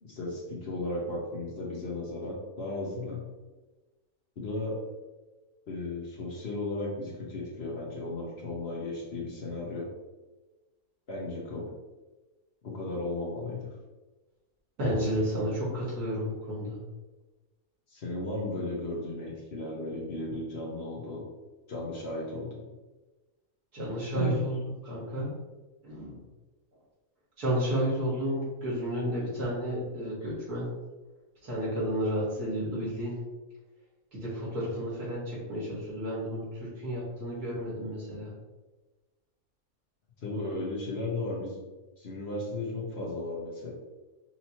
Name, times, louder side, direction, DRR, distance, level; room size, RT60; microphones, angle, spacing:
voice 1, 0.0-3.2 4.4-4.8 5.7-9.9 11.1-11.7 12.6-13.6 17.9-21.2 21.7-22.7 24.1-24.4 40.2-41.6 42.0-43.7, left 2 dB, 50° left, -3 dB, 1.0 m, -35 dB
voice 2, 14.8-16.8 23.7-24.6 24.8-25.3 25.8-26.2 27.4-30.7 31.4-33.2 34.1-38.3, equal, 85° right, -7 dB, 2.2 m, -31 dB
5.6 x 2.8 x 2.9 m, 1.2 s
omnidirectional pair, 1.6 m